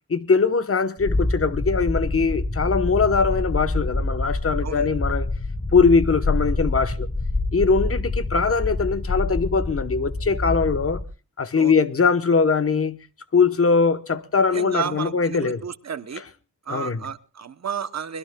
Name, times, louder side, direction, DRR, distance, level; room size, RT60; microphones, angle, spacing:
voice 1, 0.1-5.3 5.7-7.1 7.5-11.0 11.4-13.0 13.3-15.6 16.7-17.0, left 5 dB, 45° left, 1.0 m, -21 dB
sound 1, 1.0-11.0, left 2 dB, 25° left, 1.3 m, -26 dB
voice 2, 14.5-16.2 16.7-18.2, right 7 dB, 55° right, 0.8 m, -32 dB
24.0 x 21.5 x 2.2 m
wide cardioid pair, 110°, 32 cm